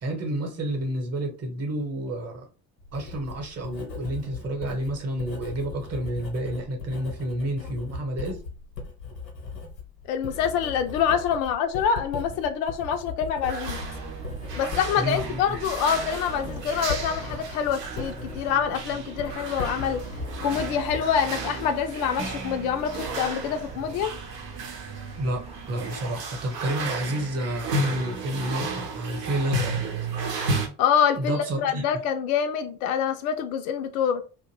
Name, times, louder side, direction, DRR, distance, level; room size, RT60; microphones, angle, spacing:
voice 1, 0.0-2.5 2.9-8.4 15.0-15.6 25.2-29.7 31.2-32.0, right 1 dB, 30° right, 0.9 m, -30 dB
Writing, 2.8-21.6, left 4 dB, 85° left, 0.9 m, -38 dB
voice 2, 10.1-13.8 14.6-20.0 20.4-24.1 30.8-34.2, left 8 dB, 60° left, 0.5 m, -26 dB
sound 1, 13.4-30.7, right 3 dB, 80° right, 0.7 m, -34 dB
sound 2, 13.6-25.9, right 4 dB, 15° right, 0.4 m, -41 dB
2.5 x 2.1 x 3.1 m
figure-of-eight pair, 55°, 49 cm